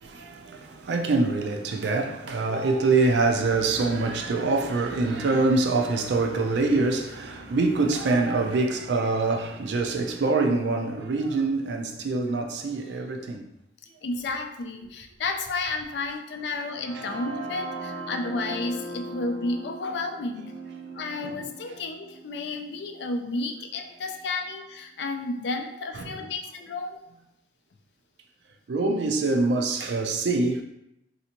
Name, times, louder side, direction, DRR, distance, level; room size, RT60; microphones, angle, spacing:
voice 1, 0.0-13.5 26.0-26.1 28.7-30.6, right 3 dB, 70° right, 0.4 m, -25 dB
voice 2, 14.0-20.5 20.9-27.0, left 3 dB, 70° left, 0.4 m, -32 dB
sound 1, 16.2-24.1, right 2 dB, 45° left, 1.1 m, -40 dB
3.3 x 2.7 x 2.9 m
head